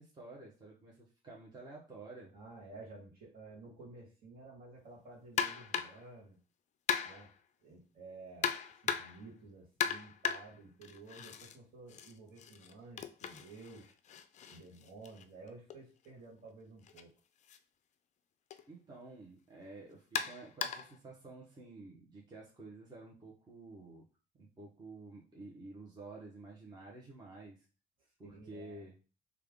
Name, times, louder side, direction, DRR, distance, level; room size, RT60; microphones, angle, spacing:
voice 1, 0.0-2.3 18.7-24.0 24.4-27.6 28.2-28.9, right 2 dB, 25° right, -3 dB, 1.0 m, -51 dB
voice 2, 2.3-6.4 7.0-7.3 7.6-14.0 14.5-17.1 28.2-28.9, right 3 dB, 55° right, -2 dB, 1.7 m, -53 dB
sound 1, 5.4-6.1 6.9-7.4 8.4-9.3 9.8-11.6 11.9-15.8 16.8-17.0 17.5-17.6 18.5-18.6 20.1-21.0, left 8 dB, 45° left, 0.4 m, -37 dB
3.4 x 2.4 x 3.5 m, 0.34 s
cardioid pair, 110°, 17 cm